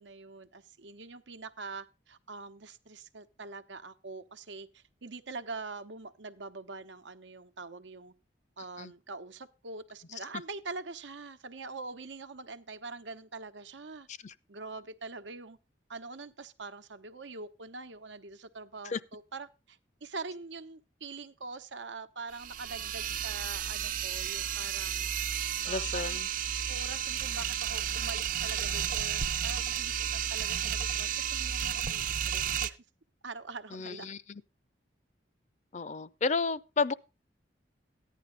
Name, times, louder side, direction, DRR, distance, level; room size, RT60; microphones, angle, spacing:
voice 1, 0.0-8.1 8.6-14.1 14.5-15.6 15.9-25.1 25.7-26.2 26.7-32.8 33.2-34.1, right 3 dB, 85° right, 1.0 m, -44 dB
sound 1, 22.3-32.7, right 9 dB, 50° right, 0.6 m, -32 dB
voice 2, 25.6-26.3 33.7-34.4 35.7-36.9, left 4 dB, 40° left, 0.5 m, -32 dB
14.5 x 10.0 x 3.9 m
head